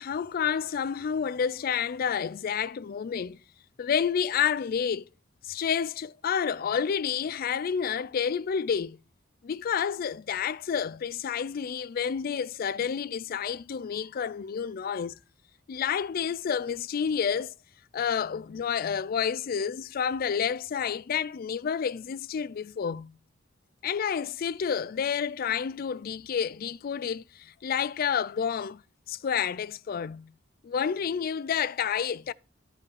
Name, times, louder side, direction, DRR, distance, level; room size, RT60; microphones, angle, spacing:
voice 1, 0.0-3.4 3.8-5.0 5.4-9.0 9.4-15.2 15.7-17.5 17.9-23.1 23.8-28.8 29.1-30.3 30.6-32.3, left 7 dB, 50° left, 0.3 m, -29 dB
13.0 x 5.0 x 4.7 m
head